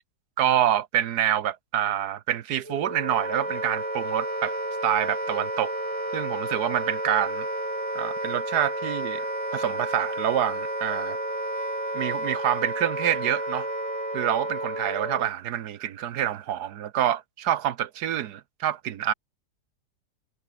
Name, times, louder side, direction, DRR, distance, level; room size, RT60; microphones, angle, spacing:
voice 1, 0.4-4.6 4.8-5.7 6.1-7.5 7.9-11.2 11.9-13.7 14.1-19.1, right 11 dB, 75° right, 1.4 m, -27 dB
Wind instrument woodwind instrument, 2.7-15.3, right 1 dB, 20° right, 4.3 m, -31 dB
omnidirectional pair, 1.8 m